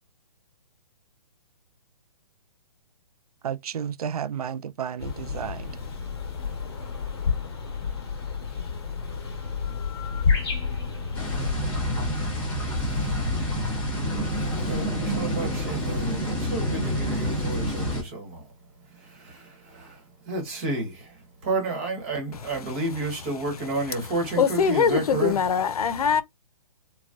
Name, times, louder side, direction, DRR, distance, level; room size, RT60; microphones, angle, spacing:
voice 1, 3.4-5.7, right 8 dB, 85° right, 0.4 m, -32 dB
sound 1, 5.0-11.5, left 5 dB, 45° left, 1.3 m, -30 dB
sound 2, 11.1-18.0, equal, 5° left, 0.8 m, -28 dB
voice 2, 14.6-18.5 18.9-25.4, right 2 dB, 20° right, 1.2 m, -31 dB
voice 3, 24.4-26.2, left 6 dB, 80° left, 0.6 m, -22 dB
4.0 x 2.2 x 2.4 m
hypercardioid pair, 170°, 19 cm